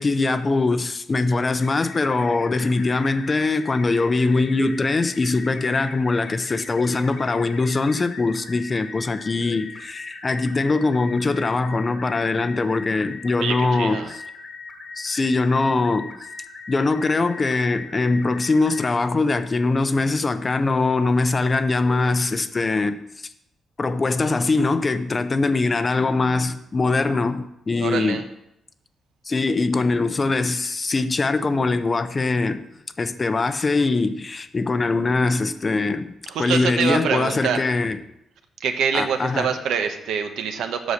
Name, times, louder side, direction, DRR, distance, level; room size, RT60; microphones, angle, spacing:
voice 1, 0.0-14.2 15.0-16.1 16.7-23.0 23.8-28.2 29.3-32.6 33.0-38.0 38.9-39.5, left 3 dB, 25° left, 0.5 m, -22 dB
sound 1, 1.6-18.9, left 4 dB, 50° left, 1.1 m, -40 dB
voice 2, 13.4-14.1 27.8-28.2 36.3-37.6 38.6-40.9, right 7 dB, 85° right, 1.0 m, -25 dB
8.2 x 6.4 x 6.5 m
cardioid pair, 160°, 0 cm